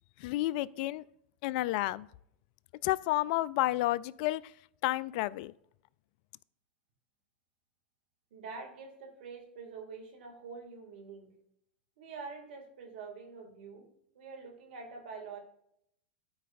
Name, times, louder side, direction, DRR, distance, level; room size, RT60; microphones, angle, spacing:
voice 1, 0.2-1.0 1.4-2.1 2.8-4.4 4.8-5.5, left 17 dB, 55° left, 20 dB, 0.4 m, -30 dB
voice 2, 8.3-11.3 12.0-13.9 14.1-15.4, right 4 dB, 65° right, 2 dB, 2.2 m, -46 dB
12.5 x 4.7 x 2.5 m, 0.74 s
hypercardioid pair, 105°, 6 cm